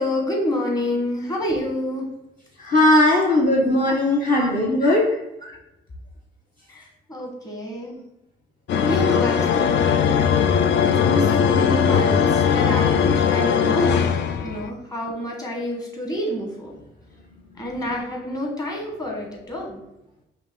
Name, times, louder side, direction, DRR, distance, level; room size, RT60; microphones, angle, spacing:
voice 1, 0.0-2.1 3.8-4.0 4.3-5.0 5.4-5.6 6.7-8.0 8.8-10.3 10.8-14.1 14.4-16.8 17.6-19.8, left 1 dB, 20° left, -1 dB, 1.3 m, -28 dB
voice 2, 2.6-5.1 13.8-13.9 14.5-14.6, left 1 dB, 45° left, -2 dB, 0.9 m, -18 dB
sound 1, 8.7-14.7, left 7 dB, 60° left, 0.4 m, -19 dB
5.4 x 2.2 x 3.7 m, 0.89 s
cardioid pair, 90°, 20 cm